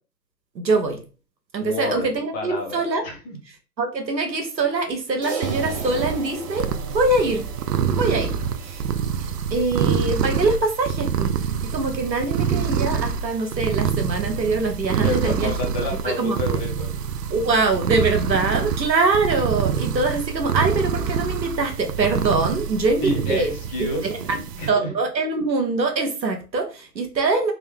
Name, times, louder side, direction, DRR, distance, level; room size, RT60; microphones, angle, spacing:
voice 1, 0.5-1.0 1.5-3.0 3.8-6.7 6.9-7.5 8.0-8.3 8.6-8.8 9.2-11.3 11.7-15.5 16.0-16.4 17.3-23.5 24.0-24.1 24.7-27.5, right 3 dB, 90° right, 4 dB, 1.0 m, -23 dB
voice 2, 1.6-2.1 2.3-3.4 15.0-16.9 23.0-24.9, left 2 dB, 15° left, 0 dB, 0.7 m, -29 dB
Crash cymbal, 5.2-9.8, right 4 dB, 20° right, 0.5 m, -37 dB
sound 1, 5.4-24.7, right 7 dB, 70° right, 0.6 m, -26 dB
3.6 x 2.1 x 3.3 m, 0.34 s
figure-of-eight pair, 125°, 50 cm